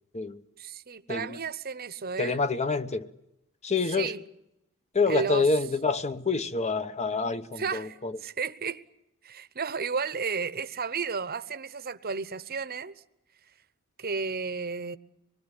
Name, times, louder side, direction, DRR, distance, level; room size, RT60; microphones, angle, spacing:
voice 1, 0.6-2.4 3.9-4.2 5.1-5.5 7.6-8.8 9.2-12.9 14.0-15.0, right 5 dB, 45° right, 1.0 m, -33 dB
voice 2, 2.2-3.1 3.6-4.1 4.9-8.1, left 4 dB, 30° left, 1.0 m, -27 dB
25.5 x 20.5 x 9.9 m
head